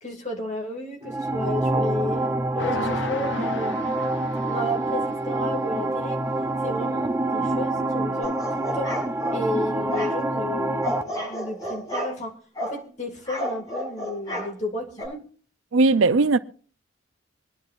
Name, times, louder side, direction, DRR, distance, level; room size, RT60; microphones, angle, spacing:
voice 1, 0.0-3.8 4.5-6.2 6.6-9.0 9.3-12.4 12.6-15.3, left 1 dB, 35° left, 2.2 m, -32 dB
sound 1, 1.0-11.0, right 2 dB, 10° right, 0.5 m, -26 dB
sound 2, 2.6-5.3, left 4 dB, 60° left, 0.5 m, -35 dB
sound 3, 8.2-9.4 9.9-10.1 10.8-12.1 12.5-12.8 13.3-14.5 15.0-15.1, equal, 20° left, 6.7 m, -31 dB
voice 2, 15.7-16.4, right 3 dB, 75° right, 0.5 m, -18 dB
25.0 x 10.0 x 2.5 m
head